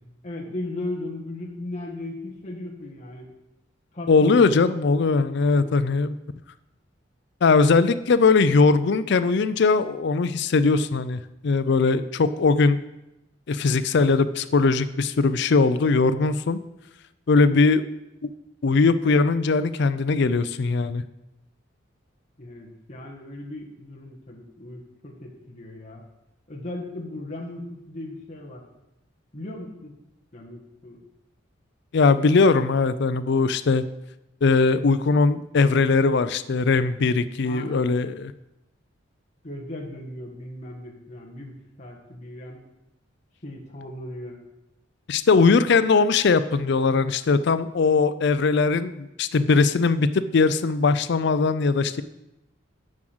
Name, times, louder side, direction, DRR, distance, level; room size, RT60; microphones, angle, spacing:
voice 1, 0.2-3.3 3.9-4.5 4.8-6.0 17.3-17.6 22.4-26.0 26.5-28.6 29.3-29.9 30.3-31.0 37.4-38.0 39.4-42.6 43.4-44.4, left 1 dB, 35° left, -3 dB, 1.6 m, -37 dB
voice 2, 4.1-6.2 7.4-12.8 13.5-16.6 17.3-17.8 18.6-21.0 31.9-33.8 34.4-38.3 45.1-52.0, left 4 dB, 60° left, 14 dB, 0.4 m, -20 dB
7.4 x 6.2 x 7.7 m, 0.90 s
head